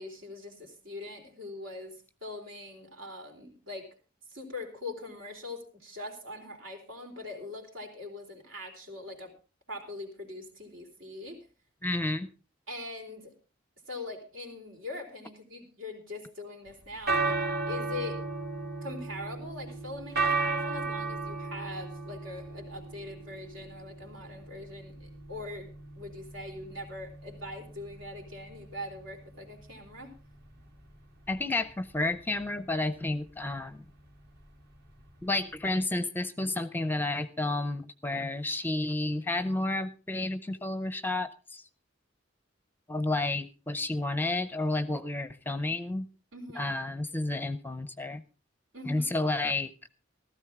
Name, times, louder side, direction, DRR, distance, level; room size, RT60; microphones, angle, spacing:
voice 1, 0.0-3.9 4.3-9.3 9.7-11.4 12.7-13.3 13.9-17.4 17.7-18.2 18.8-30.1 46.3-46.7 48.7-49.1, left 2 dB, 75° right, 3 dB, 3.9 m, -42 dB
voice 2, 11.8-12.3 31.3-33.8 35.2-41.6 42.9-46.1 46.6-48.2 48.8-49.7, left 2 dB, 10° left, 12 dB, 0.6 m, -31 dB
sound 1, 16.7-35.8, right 3 dB, 55° right, 1.9 m, -36 dB
15.5 x 13.5 x 3.6 m, 0.35 s
head